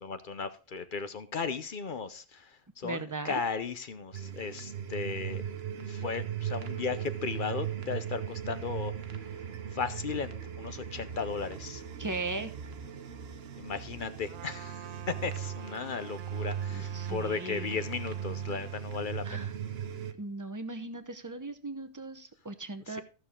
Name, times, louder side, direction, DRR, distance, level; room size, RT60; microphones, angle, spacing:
voice 1, 0.0-5.4 5.9-8.9 9.7-11.8 13.6-19.5 22.9-23.0, left 5 dB, 45° left, 11 dB, 0.8 m, -36 dB
voice 2, 2.8-3.4 12.0-12.5 16.7-17.8 19.2-19.5 20.2-23.0, right 3 dB, 15° right, 9 dB, 0.7 m, -38 dB
sound 1, 4.1-20.1, right 9 dB, 55° right, 1.0 m, -38 dB
Trumpet, 14.3-18.8, right 12 dB, 85° right, 1.1 m, -49 dB
14.5 x 6.7 x 3.6 m, 0.34 s
omnidirectional pair, 1.4 m